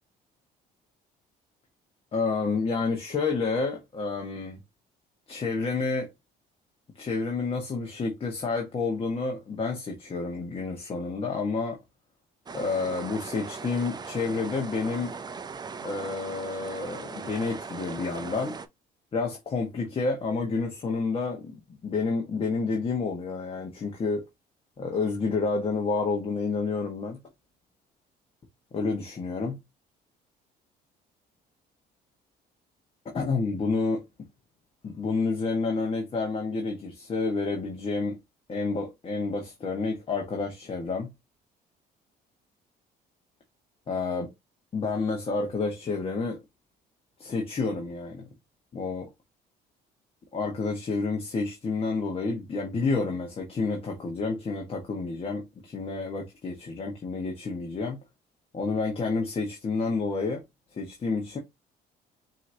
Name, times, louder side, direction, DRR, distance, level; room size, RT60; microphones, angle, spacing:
voice 1, 2.1-4.6 5.3-6.1 6.9-11.8 12.5-15.1 15.8-18.6 19.1-24.2 24.8-27.2 28.7-29.6 33.1-34.0 34.8-38.2 38.5-41.1 43.9-44.3 44.7-46.4 47.2-48.3 48.7-49.1 50.3-58.0 58.5-60.4 60.7-61.4, left 4 dB, 35° left, 1.3 m, -29 dB
sound 1, 12.5-18.7, right 5 dB, 25° right, 0.5 m, -39 dB
5.6 x 2.9 x 2.7 m
cardioid pair, 110°, 17 cm